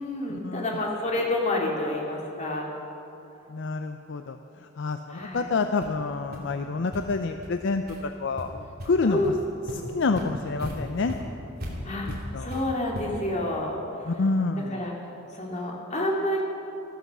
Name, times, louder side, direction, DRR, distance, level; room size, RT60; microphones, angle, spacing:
voice 1, 0.0-2.7 5.1-5.5 9.0-9.4 11.8-12.1 12.4-13.8 14.7-14.9 15.3-16.4, left 1 dB, 35° left, -2 dB, 2.4 m, -28 dB
voice 2, 3.5-9.3 9.7-11.2 12.3-12.5 14.1-14.9, left 3 dB, 60° left, 7 dB, 0.5 m, -28 dB
sound 1, 5.3-5.4 5.8-6.0 6.3-6.4 6.9-7.0 7.4-7.5 7.9-8.0 8.4-8.9 9.2-9.3 9.7-13.3, equal, 50° right, 2.6 m, -37 dB
14.0 x 13.5 x 6.1 m, 2.9 s
head